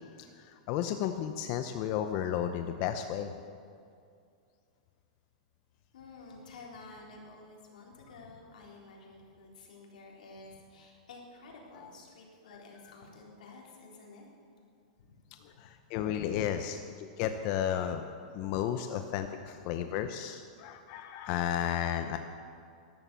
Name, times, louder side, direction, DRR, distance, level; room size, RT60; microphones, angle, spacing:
voice 1, 0.1-3.3 15.4-18.0 18.3-22.2, left 10 dB, 40° left, 7 dB, 0.7 m, -33 dB
voice 2, 5.9-14.3 15.0-15.6 19.4-19.6, left 3 dB, 90° left, -1 dB, 3.9 m, -51 dB
13.5 x 11.5 x 7.0 m, 2.3 s
supercardioid pair, 155°, 4 cm